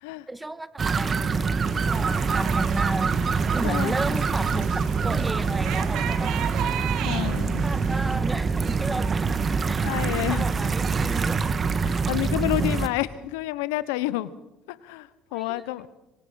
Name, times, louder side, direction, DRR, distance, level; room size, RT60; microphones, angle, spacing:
voice 1, 0.3-3.2 3.5-6.8 7.6-9.4 9.7-9.9 10.3-11.4 15.3-15.6, right 2 dB, 15° right, 13 dB, 1.7 m, -34 dB
sound 1, 0.8-12.9, right 5 dB, 40° right, 1.9 m, -25 dB
sound 2, 1.6-8.2, right 11 dB, 70° right, 1.7 m, -36 dB
voice 2, 3.6-4.2 7.0-7.7 9.8-10.5 11.8-14.3 14.7-15.9, left 17 dB, 90° left, 16 dB, 1.1 m, -29 dB
26.0 x 25.5 x 5.9 m, 0.98 s
supercardioid pair, 70°, 0 cm